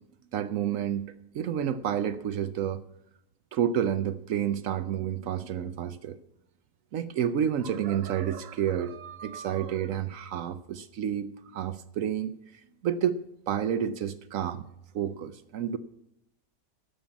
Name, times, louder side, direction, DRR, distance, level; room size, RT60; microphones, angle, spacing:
voice 1, 0.3-1.0 1.3-2.8 3.5-6.2 6.9-11.3 11.5-12.3 12.8-13.2 13.5-14.6 14.9-15.8, right 9 dB, 70° right, 13 dB, 0.8 m, -29 dB
12.0 x 7.1 x 8.9 m, 0.79 s
omnidirectional pair, 1.9 m